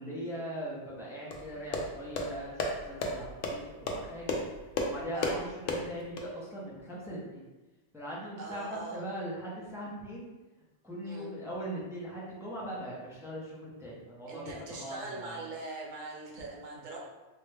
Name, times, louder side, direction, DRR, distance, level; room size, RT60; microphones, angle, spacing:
voice 1, 0.0-2.6 2.9-4.4 4.9-7.4 7.9-10.3 10.8-15.4, equal, 5° right, -5 dB, 0.5 m, -40 dB
sound 1, 1.3-6.2, left 2 dB, 80° left, 0.9 m, -34 dB
voice 2, 8.4-9.0 11.0-11.3 14.3-17.0, right 2 dB, 45° right, -3 dB, 0.8 m, -41 dB
3.9 x 2.1 x 3.3 m, 1.1 s
omnidirectional pair, 1.3 m